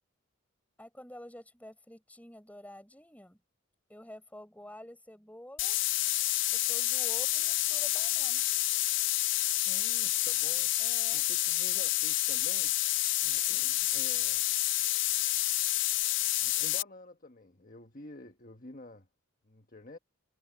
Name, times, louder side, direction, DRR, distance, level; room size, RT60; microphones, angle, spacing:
voice 1, 0.8-3.4 3.9-5.8 6.5-8.4 10.8-11.3, left 1 dB, 5° left, 4.8 m, -49 dB
sound 1, 5.6-16.8, left 16 dB, 60° left, 0.5 m, -29 dB
voice 2, 9.6-10.7 11.1-12.7 13.2-14.4 16.4-19.1 19.4-20.0, left 2 dB, 40° left, 1.4 m, -49 dB
head